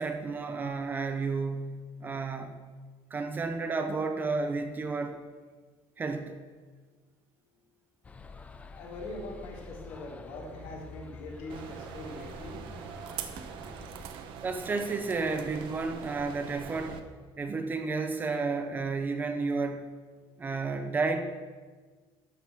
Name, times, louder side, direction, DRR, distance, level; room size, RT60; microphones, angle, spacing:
voice 1, 0.0-2.5 3.1-5.2 6.0-6.4 14.4-17.0 17.4-19.9 20.4-21.2, right 4 dB, 20° right, 7 dB, 0.7 m, -32 dB
sound 1, 8.0-14.1, left 4 dB, 15° left, 0.5 m, -48 dB
voice 2, 8.7-12.7 20.2-20.5, left 2 dB, 85° left, -3 dB, 3.5 m, -42 dB
sound 2, 11.5-17.0, right 8 dB, 65° right, 0.9 m, -42 dB
12.5 x 6.6 x 6.1 m, 1.4 s
cardioid pair, 170°, 9 cm